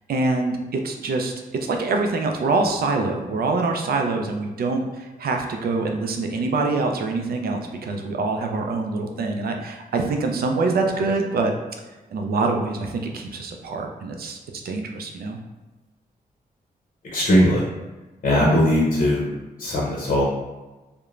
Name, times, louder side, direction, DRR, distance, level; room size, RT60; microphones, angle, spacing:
voice 1, 0.1-1.3 1.6-11.5 12.1-14.4 14.6-15.4, right 3 dB, 70° right, 3 dB, 0.4 m, -25 dB
voice 2, 17.1-17.6 18.2-19.3 19.6-20.3, equal, 50° left, -4 dB, 0.6 m, -19 dB
3.0 x 2.1 x 2.4 m, 1.2 s
cardioid pair, 80°, 16 cm